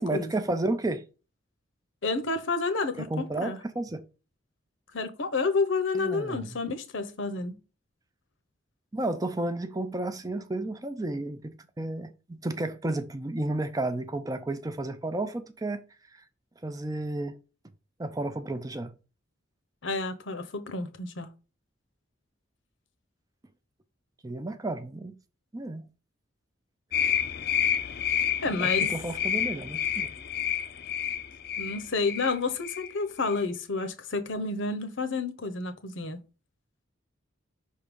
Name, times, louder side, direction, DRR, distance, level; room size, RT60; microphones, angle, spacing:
voice 1, 0.0-1.0 3.0-4.0 5.9-6.6 8.9-15.8 16.1-16.2 16.6-17.4 18.0-18.9 24.2-25.2 25.5-25.8 28.5-30.1, right 2 dB, 20° right, 0.5 m, -32 dB
voice 2, 2.0-3.6 4.9-7.6 19.8-21.3 28.4-28.9 31.6-36.2, left 3 dB, 70° left, 0.9 m, -30 dB
sound 1, 26.9-32.4 32.6-32.9 33.2-33.4, left 9 dB, 50° left, 0.5 m, -29 dB
5.4 x 3.7 x 5.2 m
head